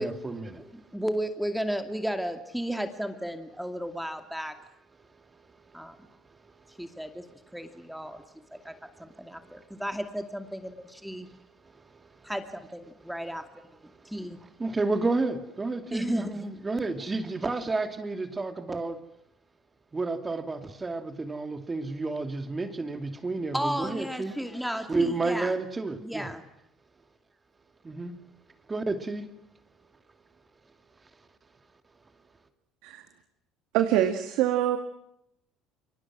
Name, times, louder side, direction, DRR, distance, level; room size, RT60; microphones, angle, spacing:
voice 1, 0.0-0.6 5.4-7.3 8.2-8.3 8.5-9.6 11.6-12.3 14.0-14.1 14.6-19.0 19.9-24.3 24.9-26.3 27.8-28.1 28.7-29.2, right 3 dB, 20° right, 8 dB, 2.6 m, -32 dB
voice 2, 0.5-4.5 5.7-6.0 6.8-7.2 7.5-8.2 8.6-8.7 9.0-11.3 12.2-13.4 14.0-14.4 15.9-16.5 23.5-25.6 26.0-26.4, equal, ahead, 7 dB, 2.4 m, -33 dB
voice 3, 33.7-34.8, right 12 dB, 75° right, 6 dB, 2.2 m, -24 dB
29.5 x 23.5 x 6.2 m, 0.78 s
supercardioid pair, 90°, 0 cm